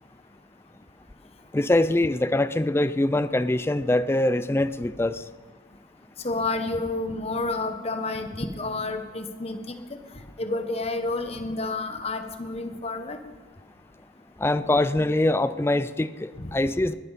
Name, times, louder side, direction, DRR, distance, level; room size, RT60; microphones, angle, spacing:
voice 1, 1.5-5.2 14.4-16.9, left 1 dB, 10° left, 13 dB, 0.3 m, -23 dB
voice 2, 6.2-9.7 10.4-13.2 16.4-16.5, left 2 dB, 30° left, 7 dB, 1.2 m, -30 dB
19.5 x 12.0 x 4.1 m, 1.4 s
head